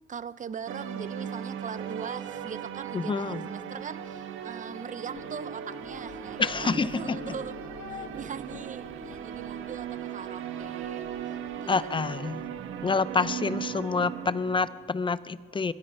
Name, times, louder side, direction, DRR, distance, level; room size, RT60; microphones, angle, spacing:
voice 1, 0.1-7.6 7.9-11.9 12.2-12.6, right 7 dB, 40° right, 15 dB, 0.8 m, -41 dB
sound 1, 0.7-14.7, right 8 dB, 90° right, 1.4 m, -38 dB
voice 2, 2.9-3.4 6.4-7.3 11.7-12.4 12.8-15.7, left 4 dB, 25° left, 17 dB, 0.6 m, -28 dB
sound 2, 4.4-9.5, left 8 dB, 75° left, 1.3 m, -48 dB
sound 3, 5.8-13.2, right 2 dB, 55° right, 3.9 m, -57 dB
24.5 x 21.5 x 5.5 m, 2.1 s
cardioid pair, 90°, 20 cm